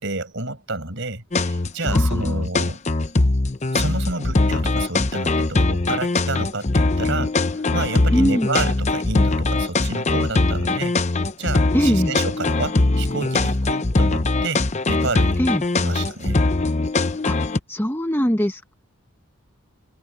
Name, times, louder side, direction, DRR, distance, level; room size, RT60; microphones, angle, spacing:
voice 1, 0.0-2.8 3.7-7.3 7.7-10.9 11.4-15.4 15.8-16.4, right 2 dB, 55° right, 6.0 m, -29 dB
sound 1, 1.3-17.6, left 2 dB, 30° left, 0.7 m, -21 dB
voice 2, 1.9-2.5 8.1-8.5 11.7-12.1 15.4-15.6 17.2-17.4 17.7-18.7, equal, 10° left, 1.0 m, -22 dB
head